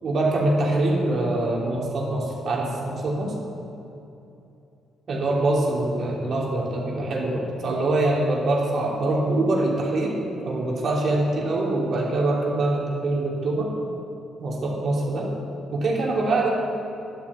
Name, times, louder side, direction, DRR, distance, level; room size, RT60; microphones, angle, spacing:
voice 1, 0.0-3.3 5.1-10.2 10.5-13.7 14.4-15.3 15.7-16.5, right 2 dB, 55° right, -3 dB, 3.3 m, -24 dB
12.0 x 8.3 x 8.8 m, 2.8 s
cardioid pair, 90°, 0 cm